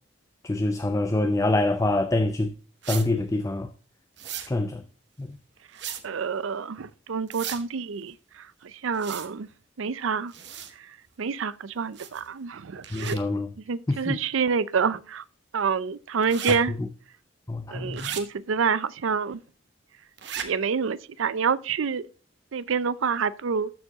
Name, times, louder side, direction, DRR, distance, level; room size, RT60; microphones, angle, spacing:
voice 1, 0.4-2.5 2.9-3.7 4.5-4.8 5.2-5.4 12.9-13.5 13.9-14.2 17.5-18.1, left 2 dB, 15° left, 0.4 m, -25 dB
sound 1, 2.8-3.1 4.2-4.5 5.7-6.0 7.3-7.6 8.9-9.3 10.3-10.7 12.0-12.3 12.8-13.2 16.2-16.6 17.9-18.2 20.2-20.5, right 9 dB, 60° right, 1.0 m, -35 dB
voice 2, 6.0-8.5 8.7-9.5 9.8-10.3 11.2-13.2 13.7-15.2 15.5-16.7 17.7-19.4 20.4-22.0 22.5-23.7, right 6 dB, 80° right, 0.5 m, -27 dB
13.0 x 4.6 x 2.9 m
head